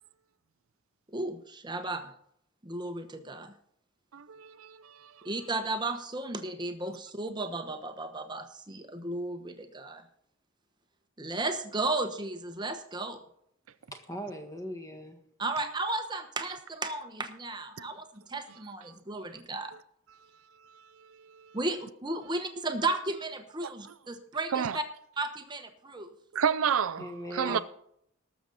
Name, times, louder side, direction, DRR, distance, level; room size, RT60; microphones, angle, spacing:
voice 1, 1.1-2.1 2.6-3.5 5.2-10.0 11.2-13.2 15.4-19.7 21.5-24.8 25.2-26.1 27.5-27.6, right 2 dB, 20° right, 1.0 m, -34 dB
voice 2, 4.1-5.3 17.8-17.9 20.6-20.9 21.3-21.6 23.6-23.7 24.5-24.8 26.3-27.1 27.3-27.6, right 7 dB, 75° right, 0.5 m, -30 dB
voice 3, 13.9-15.2 27.0-27.6, left 1 dB, 15° left, 1.6 m, -39 dB
19.5 x 7.0 x 4.0 m
head